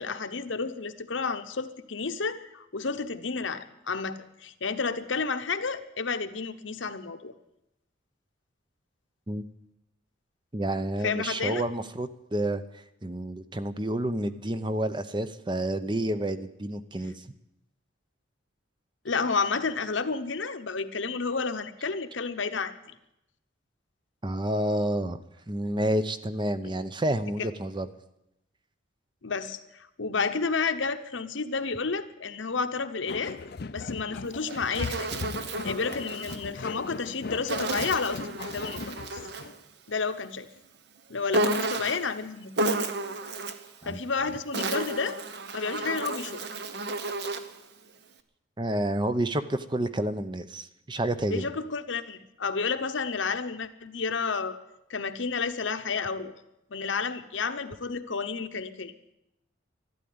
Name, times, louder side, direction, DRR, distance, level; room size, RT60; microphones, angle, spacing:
voice 1, 0.0-7.3 11.0-11.7 19.0-22.7 29.2-29.6 30.0-33.4 33.7-35.1 35.6-38.8 39.1-39.2 39.9-40.5 41.1-42.7 43.8-45.2 45.5-46.4 51.3-54.6 54.9-56.3 56.7-58.9, left 4 dB, 75° left, 9 dB, 1.0 m, -31 dB
voice 2, 10.5-12.6 13.0-17.2 24.2-25.2 25.5-27.9 43.8-44.0 48.6-51.5, right 1 dB, 25° right, 11 dB, 0.7 m, -29 dB
sound 1, 33.1-39.6, left 4 dB, 55° left, 0.5 m, -38 dB
Insect, 34.2-36.4 37.5-39.6 41.3-42.1 42.6-43.7 44.3-47.6, right 2 dB, 55° right, 1.0 m, -32 dB
12.5 x 12.0 x 9.5 m, 0.86 s
head